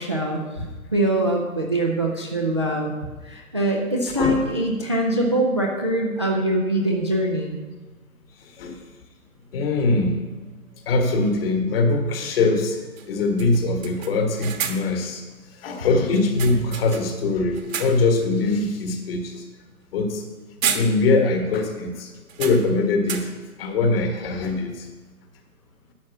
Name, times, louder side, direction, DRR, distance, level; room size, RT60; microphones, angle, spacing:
voice 1, 0.0-2.9 3.2-7.6, right 1 dB, 20° right, 0 dB, 0.4 m, -23 dB
voice 2, 4.2-4.5 8.4-8.8 9.5-10.3 10.8-15.2 15.5-19.4 19.9-20.2 20.7-22.1 22.4-23.3 23.6-24.9, left 3 dB, 40° left, 4 dB, 1.6 m, -22 dB
sound 1, 9.8-9.9 11.9-12.1 12.4-12.5 13.0-13.1 13.4-15.0 16.1-17.2 17.5-18.2 18.6-18.8 20.1-20.3 20.6-21.4 21.6-21.7 22.3-23.5, right 6 dB, 65° right, 1.4 m, -31 dB
11.0 x 5.2 x 7.1 m, 1.3 s
hypercardioid pair, 150°, 44 cm